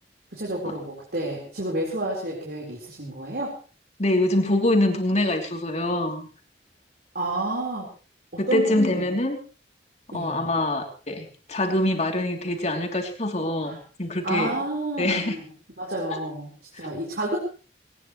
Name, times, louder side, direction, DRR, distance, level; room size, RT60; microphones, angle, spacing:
voice 1, 0.3-3.6 7.1-7.9 8.3-9.1 10.1-10.5 13.6-13.8 14.2-15.4 15.8-17.4, right 2 dB, 60° right, -3 dB, 4.3 m, -30 dB
voice 2, 4.0-6.3 8.4-9.4 10.1-14.6 15.0-15.4 16.1-16.2 16.7-16.9, left 1 dB, 40° left, 3 dB, 3.1 m, -24 dB
20.0 x 19.0 x 3.2 m, 0.36 s
head